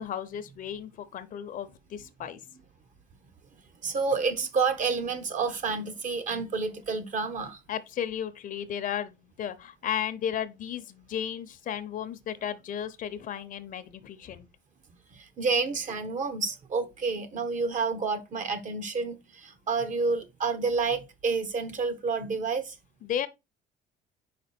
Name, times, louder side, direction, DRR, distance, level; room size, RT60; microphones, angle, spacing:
voice 1, 0.0-2.4 7.7-14.5 23.0-23.3, left 9 dB, 55° left, 0.7 m, -34 dB
voice 2, 3.8-7.6 15.1-22.8, right 4 dB, 50° right, 1.1 m, -29 dB
5.1 x 4.5 x 4.4 m
cardioid pair, 110°, 17 cm